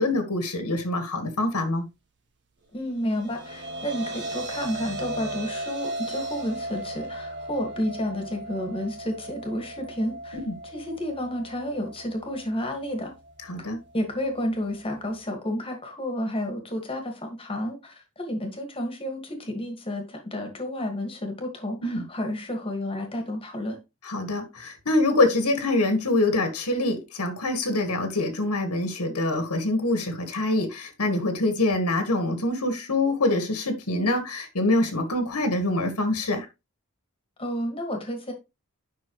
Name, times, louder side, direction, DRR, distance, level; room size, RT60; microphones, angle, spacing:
voice 1, 0.0-1.8 10.4-10.5 13.5-13.8 21.8-22.0 24.0-36.5, left 2 dB, 85° left, 1.6 m, -25 dB
voice 2, 2.7-10.4 10.6-13.1 13.9-23.8 37.4-38.3, left 1 dB, 25° left, 1.8 m, -31 dB
sound 1, 2.9-15.2, right 1 dB, 50° right, 1.8 m, -37 dB
9.7 x 5.9 x 3.1 m
head